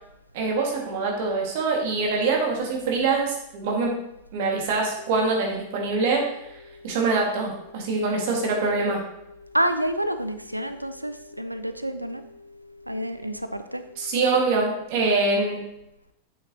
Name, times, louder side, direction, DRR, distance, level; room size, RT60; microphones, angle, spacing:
voice 1, 0.3-3.9 4.3-6.2 6.8-9.0 14.0-15.6, right 3 dB, 50° right, 0 dB, 1.8 m, -24 dB
sound 1, 5.0-15.0, left 3 dB, 60° left, 1.1 m, -49 dB
voice 2, 9.5-12.2 12.9-13.8, right 1 dB, 85° right, 9 dB, 0.4 m, -28 dB
7.8 x 6.5 x 2.9 m, 0.83 s
figure-of-eight pair, 90°, 0 cm